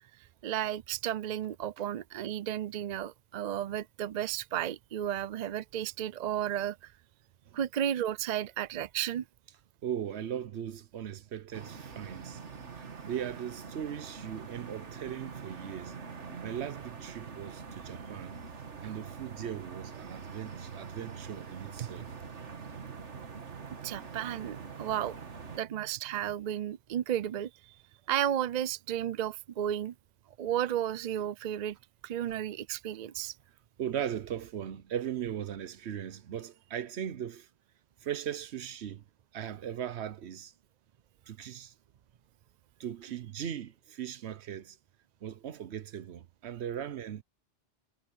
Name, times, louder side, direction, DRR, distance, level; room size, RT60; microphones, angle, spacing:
voice 1, 0.4-6.9 7.5-9.2 23.8-25.2 25.6-27.8 28.1-29.9 30.4-31.8 32.0-33.4, right 10 dB, 55° right, 0.5 m, -33 dB
voice 2, 9.8-12.4 12.7-16.0 16.4-18.4 18.8-22.1 25.5-25.9 33.8-37.5 38.0-39.0 39.3-40.5 41.3-41.7 42.8-44.8 45.2-47.2, right 9 dB, 70° right, 1.0 m, -38 dB
sound 1, 11.5-25.6, right 5 dB, 85° right, 1.9 m, -44 dB
omnidirectional pair, 1.2 m